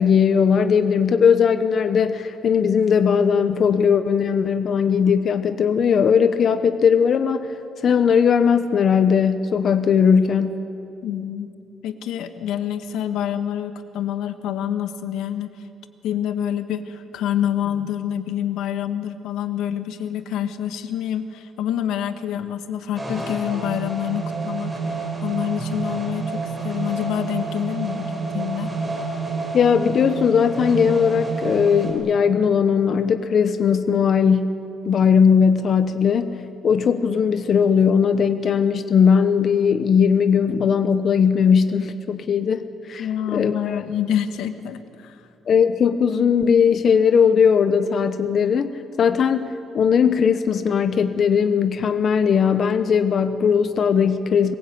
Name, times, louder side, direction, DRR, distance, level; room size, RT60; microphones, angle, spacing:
voice 1, 0.0-7.5 7.8-10.6 29.5-34.6 34.8-36.3 36.6-43.8 45.5-54.5, left 6 dB, 45° left, 9 dB, 0.9 m, -18 dB
voice 2, 11.0-11.5 11.8-15.5 16.0-24.7 25.2-28.7 43.0-45.2, left 10 dB, 85° left, 8 dB, 1.5 m, -27 dB
sound 1, 23.0-31.9, right 3 dB, 10° right, 5.1 m, -29 dB
22.5 x 22.0 x 8.6 m, 2.9 s
cardioid pair, 145°, 0 cm